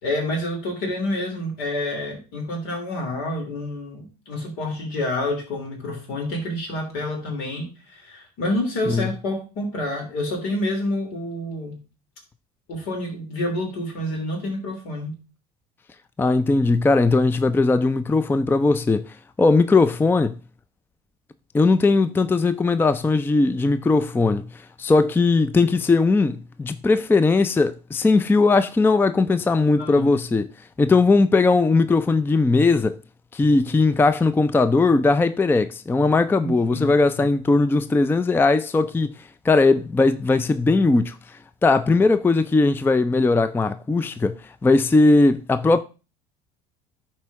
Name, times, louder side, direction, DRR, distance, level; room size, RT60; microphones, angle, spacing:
voice 1, 0.0-11.8 12.7-15.2 29.8-30.1 36.4-36.9 37.1-37.2, left 1 dB, 70° left, 3.2 m, -28 dB
voice 2, 16.2-20.4 21.5-30.5 30.8-33.0 33.3-39.2 39.4-44.3 44.6-45.8, left 3 dB, 10° left, 0.4 m, -19 dB
12.0 x 4.4 x 3.5 m
hypercardioid pair, 80°, 20 cm